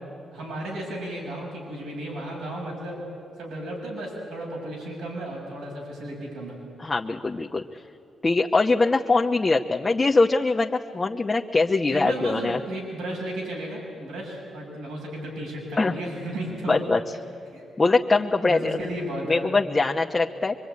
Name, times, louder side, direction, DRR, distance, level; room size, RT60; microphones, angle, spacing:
voice 1, 0.3-3.0 3.4-6.6 11.9-16.8 17.5-17.6 18.4-19.5, right 1 dB, 90° right, -2 dB, 7.4 m, -34 dB
voice 2, 6.8-7.6 8.2-12.6 15.8-16.0 16.7-17.0 17.8-18.8 19.2-20.6, left 3 dB, 30° left, 1 dB, 1.0 m, -22 dB
24.0 x 23.5 x 9.6 m, 2.7 s
cardioid pair, 70°, 0 cm